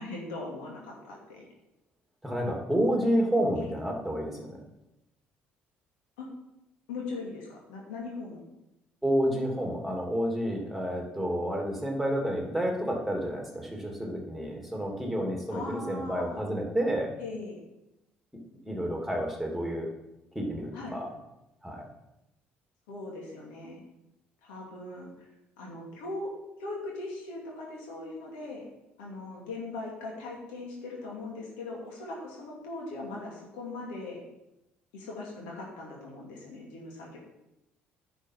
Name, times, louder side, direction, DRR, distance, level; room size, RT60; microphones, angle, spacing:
voice 1, 0.0-1.5 3.5-3.7 6.2-6.3 6.9-8.4 15.5-16.4 17.2-17.6 20.7-21.0 22.9-23.8 24.4-25.3 25.6-26.3 26.6-28.7 29.0-34.2 34.9-37.2, left 2 dB, 75° left, -2 dB, 2.5 m, -40 dB
voice 2, 2.2-4.6 9.0-17.2 18.6-19.9 20.3-21.1 21.6-21.8, equal, ahead, 0 dB, 2.9 m, -30 dB
10.5 x 6.0 x 5.6 m, 0.92 s
hypercardioid pair, 50°, 5 cm